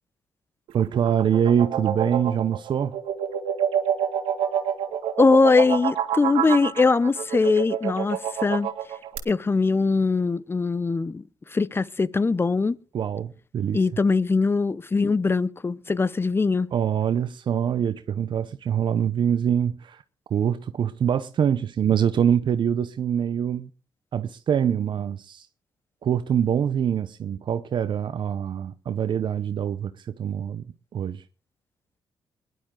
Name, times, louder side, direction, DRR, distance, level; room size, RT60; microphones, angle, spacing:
voice 1, 0.7-3.0 12.9-13.9 16.7-20.0 20.3-23.7 24.1-25.5 26.0-30.6 30.9-31.2, right 8 dB, 60° right, 0.8 m, -24 dB
sound 1, 0.7-9.2, right 9 dB, 85° right, 2.0 m, -27 dB
voice 2, 5.2-8.7 9.3-11.2 11.5-12.8 13.7-16.7, left 4 dB, 25° left, 0.7 m, -21 dB
21.0 x 11.0 x 3.8 m
cardioid pair, 70°, 9 cm